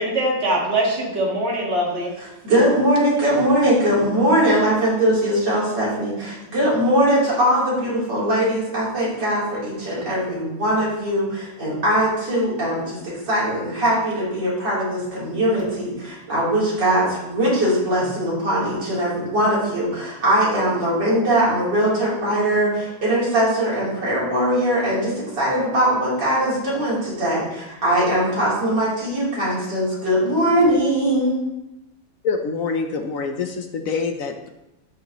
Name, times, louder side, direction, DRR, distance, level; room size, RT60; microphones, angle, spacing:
voice 1, 0.0-2.1, right 1 dB, 35° right, -2 dB, 2.1 m, -22 dB
voice 2, 2.4-31.4, right 1 dB, 65° right, -8 dB, 4.2 m, -21 dB
voice 3, 32.2-34.5, left 4 dB, 65° left, 5 dB, 0.9 m, -25 dB
13.0 x 6.4 x 3.0 m, 0.93 s
omnidirectional pair, 2.1 m